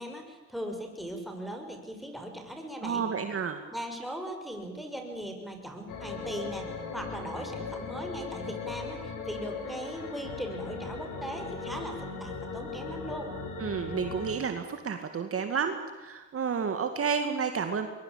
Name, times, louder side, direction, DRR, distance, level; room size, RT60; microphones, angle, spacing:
voice 1, 0.0-3.0 3.7-13.3, equal, ahead, 3 dB, 6.3 m, -39 dB
voice 2, 2.8-3.6 13.6-17.9, right 6 dB, 50° right, 7 dB, 2.2 m, -31 dB
sound 1, 5.9-14.3, left 4 dB, 90° left, 5.4 m, -38 dB
23.0 x 22.5 x 8.7 m, 1.2 s
cardioid pair, 90°, 30 cm